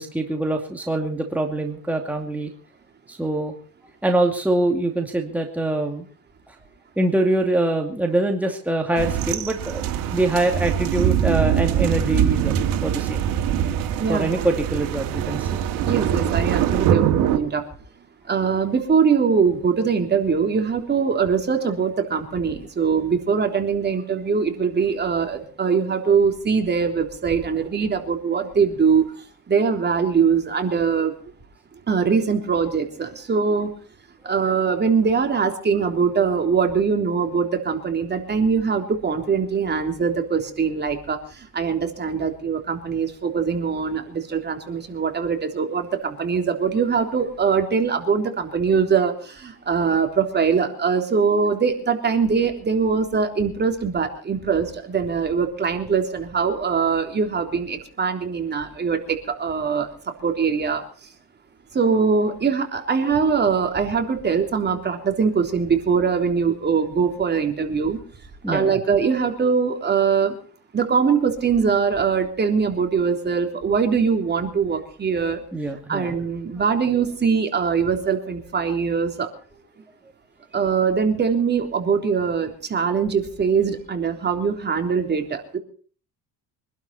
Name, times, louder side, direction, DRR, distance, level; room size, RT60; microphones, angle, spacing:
voice 1, 0.0-2.5 3.1-3.5 4.0-6.1 6.5-6.6 7.0-9.8 10.1-12.6 12.8-13.3 14.1-15.6 68.4-68.7 75.5-76.1, right 2 dB, 5° right, 2 dB, 2.5 m, -24 dB
sound 1, 9.0-17.4, right 10 dB, 75° right, 2.7 m, -23 dB
voice 2, 14.0-14.4 15.8-17.7 18.3-31.1 31.9-33.7 34.2-61.1 61.7-68.0 68.5-70.4 70.7-75.4 75.9-79.3 80.5-85.6, right 6 dB, 30° right, 5 dB, 3.5 m, -22 dB
25.0 x 12.0 x 4.3 m, 0.43 s
cardioid pair, 120°, 34 cm